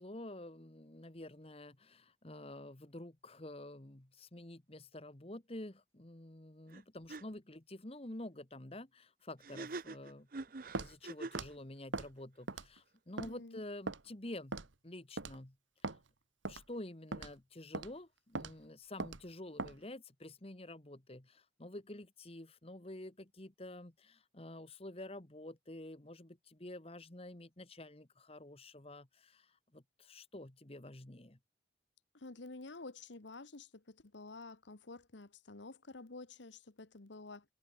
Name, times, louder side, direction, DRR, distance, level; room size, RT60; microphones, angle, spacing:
voice 1, 0.0-10.3 10.7-14.6 14.8-15.6 15.9-16.0 16.5-31.4, left 1 dB, 30° left, 1.5 m, -49 dB
sound 1, 6.7-6.8 7.1-7.2 9.4-11.5, right 3 dB, 50° right, 0.8 m, -44 dB
Walk footsteps, 10.7-10.9 11.3-11.5 11.9-12.1 12.5-12.8 13.2-13.3 13.9-14.0 14.5-14.7 15.2-15.4 15.8-16.0 16.4-16.6 17.1-17.3 17.7-17.9 18.3-18.5 19.0-19.2 19.6-19.8, right 3 dB, 90° right, 1.6 m, -40 dB
voice 2, 13.2-13.6 32.1-37.4, left 3 dB, 75° left, 1.3 m, -50 dB
head